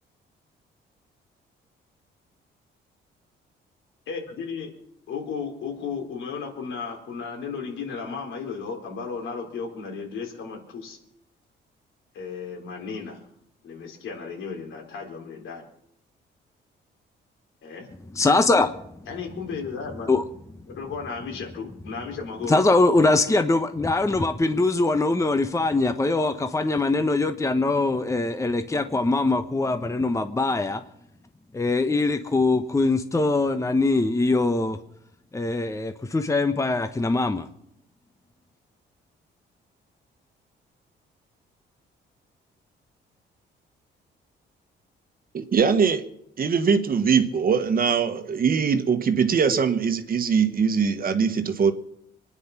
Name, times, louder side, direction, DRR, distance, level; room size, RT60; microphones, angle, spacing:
voice 1, 4.1-4.7 5.1-11.0 12.1-13.2 13.6-15.7 17.6-17.9 19.1-20.2 20.7-22.7, left 5 dB, 75° left, 4.0 m, -34 dB
voice 2, 18.1-18.7 20.1-20.2 22.4-30.8 31.5-34.8 35.3-37.5, left 2 dB, 15° left, 1.0 m, -22 dB
voice 3, 45.3-46.0 46.4-51.7, right 6 dB, 45° right, 1.5 m, -22 dB
24.0 x 9.8 x 5.9 m
cardioid pair, 90°, 20 cm